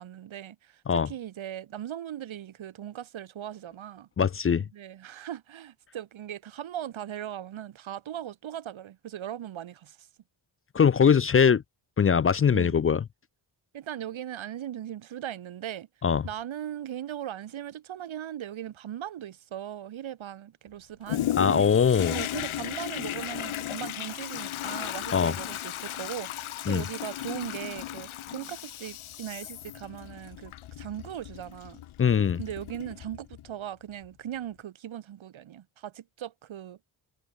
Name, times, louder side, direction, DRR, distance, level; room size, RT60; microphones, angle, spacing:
voice 1, 0.0-4.1 4.7-10.1 12.5-12.8 13.7-15.9 16.2-21.7 22.1-30.5 30.8-31.8 32.4-36.8, right 11 dB, 75° right, 1.9 m, -39 dB
voice 2, 4.2-4.6 10.7-11.6 12.0-13.0 16.0-16.2 21.4-22.2 25.1-25.3 26.7-26.8 32.0-32.4, left 7 dB, 30° left, 0.4 m, -21 dB
Toilet flush, 21.1-33.5 34.0-34.1, left 12 dB, 90° left, 1.7 m, -36 dB
cardioid pair, 85°, 47 cm